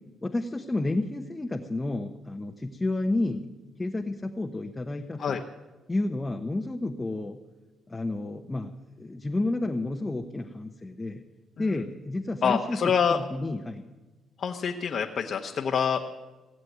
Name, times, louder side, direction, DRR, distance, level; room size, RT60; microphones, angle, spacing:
voice 1, 0.2-3.5 3.7-5.4 5.9-7.4 7.9-11.2 11.6-13.8, left 2 dB, 20° left, 3 dB, 1.0 m, -31 dB
voice 2, 12.4-13.2 14.4-16.0, left 7 dB, 55° left, 1 dB, 1.1 m, -26 dB
18.0 x 7.7 x 9.4 m, 1.2 s
cardioid pair, 90°, 0 cm